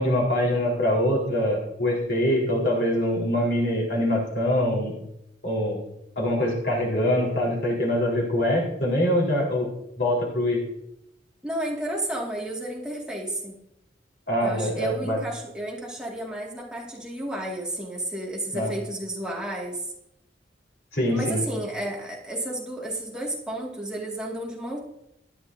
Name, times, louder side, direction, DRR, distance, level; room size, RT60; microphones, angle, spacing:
voice 1, 0.0-4.9 5.4-5.8 6.2-9.7 10.0-10.6 14.3-15.2 18.5-18.7 20.9-21.4, left 1 dB, 65° left, -2 dB, 4.2 m, -24 dB
voice 2, 11.4-13.5 14.4-19.9 21.1-24.8, right 1 dB, 5° right, -3 dB, 2.1 m, -32 dB
18.0 x 11.0 x 2.7 m, 0.82 s
head